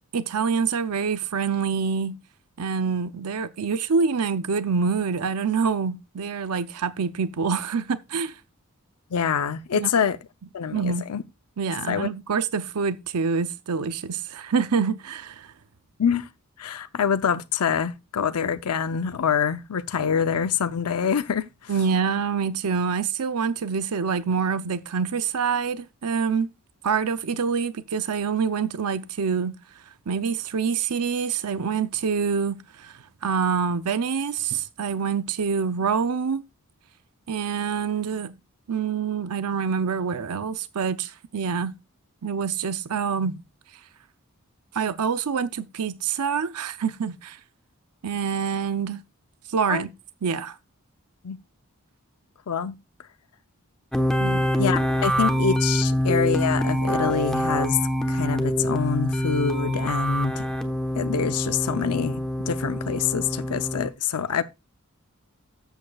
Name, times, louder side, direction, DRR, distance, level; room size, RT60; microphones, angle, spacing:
voice 1, 0.1-2.2 2.6-8.4 9.7-9.9 10.7-11.1 11.6-15.5 21.7-26.5 26.8-29.5 30.1-36.4 37.3-38.4 38.7-41.7 42.2-43.4 44.7-47.4 48.0-49.0 49.5-49.9 50.2-50.6 54.2-54.5, right 6 dB, 90° right, 0.6 m, -26 dB
voice 2, 9.1-10.2 10.5-11.2 11.9-12.1 16.0-16.3 16.6-21.7 49.7-49.8 51.2-51.4 52.5-52.8 54.6-57.8 58.1-60.5 61.0-64.4, left 7 dB, 85° left, 0.6 m, -25 dB
sound 1, 53.9-63.9, equal, 5° left, 1.0 m, -25 dB
13.0 x 8.1 x 2.3 m
head